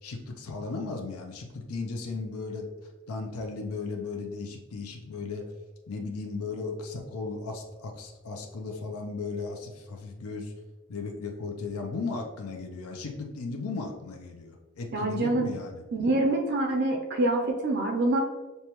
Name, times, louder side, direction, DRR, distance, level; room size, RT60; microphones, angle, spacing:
voice 1, 0.0-2.7 3.1-5.4 5.9-10.5 10.9-15.9, left 4 dB, 85° left, 1 dB, 0.6 m, -36 dB
voice 2, 14.9-15.5 15.9-18.2, right 2 dB, 50° right, 2 dB, 0.5 m, -25 dB
6.6 x 2.2 x 2.9 m, 1.2 s
head